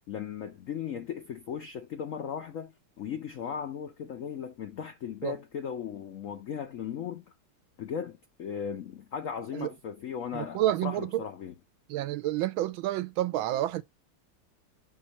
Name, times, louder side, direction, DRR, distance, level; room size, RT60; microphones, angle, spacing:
voice 1, 0.1-7.2 7.8-11.5, left 8 dB, 75° left, 0.7 m, -37 dB
voice 2, 10.3-11.2 11.9-13.8, right 14 dB, 80° right, 1.5 m, -29 dB
6.1 x 6.0 x 2.9 m
omnidirectional pair, 2.2 m